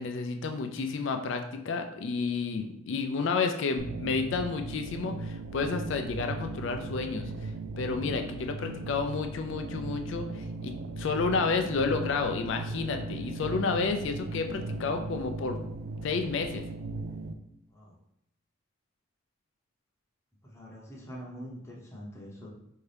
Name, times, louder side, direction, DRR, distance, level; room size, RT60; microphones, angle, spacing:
voice 1, 0.0-7.5 7.8-15.6 16.0-16.6, left 4 dB, 65° left, 6 dB, 0.4 m, -31 dB
sound 1, 3.8-17.3, right 3 dB, 75° right, 0.3 m, -38 dB
voice 2, 20.4-22.5, equal, 15° left, -4 dB, 0.7 m, -44 dB
4.6 x 2.7 x 3.3 m, 0.79 s
head